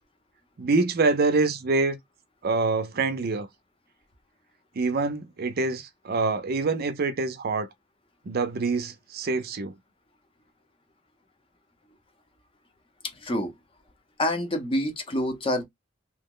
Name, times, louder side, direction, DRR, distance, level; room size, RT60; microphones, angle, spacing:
voice 1, 0.6-2.0 2.4-3.5 4.8-7.7 8.2-9.7, right 3 dB, 50° right, 0.5 m, -25 dB
voice 2, 13.2-13.5 14.2-15.6, left 1 dB, 25° left, 0.7 m, -27 dB
2.9 x 2.1 x 3.6 m
head